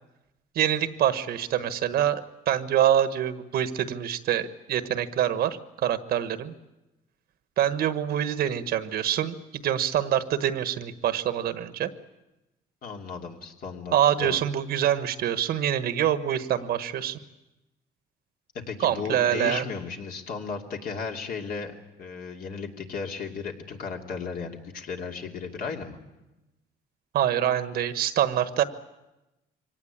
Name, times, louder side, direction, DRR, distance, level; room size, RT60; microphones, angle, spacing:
voice 1, 0.5-6.5 7.6-11.9 13.9-17.2 18.8-19.6 27.1-28.6, right 10 dB, 65° right, 11 dB, 1.4 m, -25 dB
voice 2, 12.8-14.4 18.7-21.7 22.0-26.0, left 5 dB, 60° left, 2 dB, 2.8 m, -35 dB
24.0 x 18.0 x 8.7 m, 0.98 s
cardioid pair, 110°, 17 cm